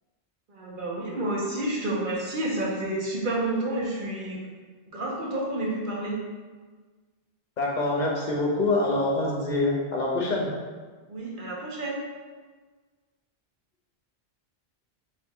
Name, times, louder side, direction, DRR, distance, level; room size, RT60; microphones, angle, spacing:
voice 1, 0.5-4.4 4.9-6.1 11.1-12.0, right 1 dB, 55° right, -3 dB, 1.0 m, -30 dB
voice 2, 7.6-10.5, left 2 dB, 50° left, -2 dB, 0.9 m, -25 dB
4.2 x 2.8 x 3.5 m, 1.4 s
omnidirectional pair, 1.1 m